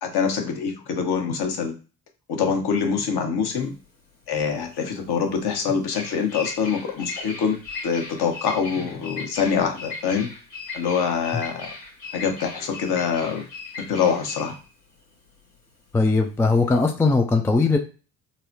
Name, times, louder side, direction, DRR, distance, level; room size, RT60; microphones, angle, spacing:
voice 1, 0.0-1.7 2.3-3.7 4.3-7.6 7.8-10.3 10.7-11.7 12.1-13.5 13.9-14.6, left 6 dB, 50° left, 3 dB, 1.1 m, -25 dB
Bird vocalization bird call bird song, 3.5-16.8, left 3 dB, 75° left, 1.4 m, -38 dB
voice 2, 15.9-17.8, left 3 dB, 5° left, 4 dB, 0.3 m, -19 dB
3.9 x 2.1 x 2.8 m, 0.34 s
hypercardioid pair, 50°, 49 cm